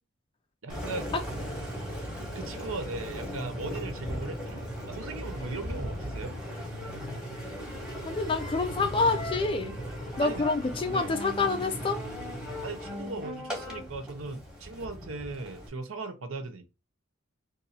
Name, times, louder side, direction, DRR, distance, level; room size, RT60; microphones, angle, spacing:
voice 1, 0.6-1.4 2.3-6.4 10.2-10.5 10.9-11.1 12.6-16.6, right 3 dB, 80° right, 0.7 m, -38 dB
Engine, 0.7-15.7, equal, 5° right, 1.1 m, -37 dB
voice 2, 8.0-9.7 10.2-12.0, left 3 dB, 25° left, 0.3 m, -27 dB
2.7 x 2.6 x 4.0 m
head